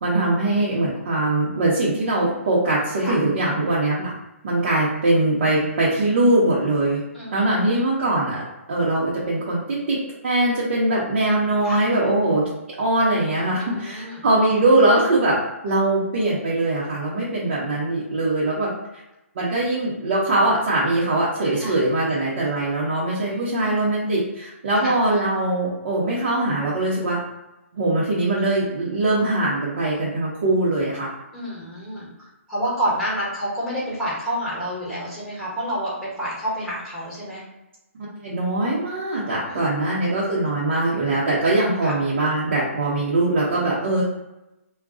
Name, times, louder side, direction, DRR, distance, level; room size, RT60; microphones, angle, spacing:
voice 1, 0.0-4.1 4.4-7.0 7.3-8.4 8.7-10.0 10.2-12.4 12.8-15.4 15.6-18.7 19.3-27.2 27.7-31.1 38.2-44.0, right 2 dB, 50° right, -7 dB, 0.8 m, -21 dB
voice 2, 7.1-7.8 11.6-11.8 13.6-14.2 21.6-21.8 23.1-23.7 24.8-24.9 31.3-37.4 39.5-39.9 41.8-41.9, equal, ahead, -12 dB, 1.2 m, -29 dB
2.4 x 2.2 x 3.6 m, 0.94 s
hypercardioid pair, 160°, 8 cm